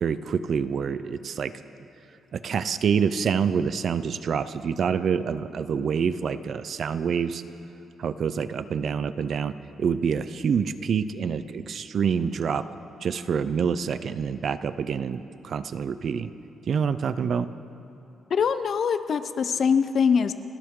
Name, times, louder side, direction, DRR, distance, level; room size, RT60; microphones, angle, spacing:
voice 1, 0.0-1.5 2.3-7.4 8.0-12.6 13.0-16.3 16.7-17.5, right 6 dB, 45° right, 13 dB, 0.5 m, -27 dB
voice 2, 18.3-20.3, left 6 dB, 45° left, 11 dB, 0.6 m, -23 dB
29.5 x 12.5 x 3.8 m, 2.9 s
cardioid pair, 175°, 0 cm